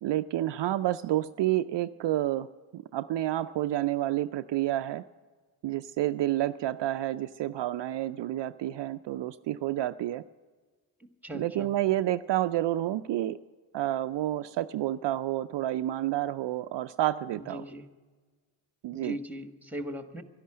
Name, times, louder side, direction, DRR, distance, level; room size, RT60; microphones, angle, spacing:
voice 1, 0.0-2.5 2.7-5.0 5.6-10.2 11.3-13.4 13.7-17.6 18.8-19.2, right 14 dB, 60° right, 10 dB, 0.5 m, -29 dB
voice 2, 11.2-11.7 17.4-17.8 18.9-20.2, right 1 dB, 5° right, 7 dB, 1.5 m, -39 dB
12.0 x 11.0 x 8.7 m, 1.4 s
supercardioid pair, 40°, 49 cm